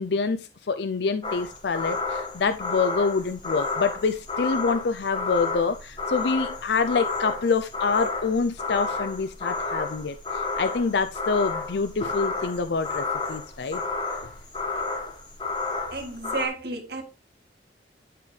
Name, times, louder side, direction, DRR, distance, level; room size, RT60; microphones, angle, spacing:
voice 1, 0.0-13.8, left 4 dB, 70° left, 0.5 m, -26 dB
sound 1, 1.2-16.5, left 3 dB, 25° left, 1.5 m, -31 dB
voice 2, 15.9-17.0, right 3 dB, 65° right, 1.9 m, -32 dB
11.5 x 4.5 x 3.2 m
head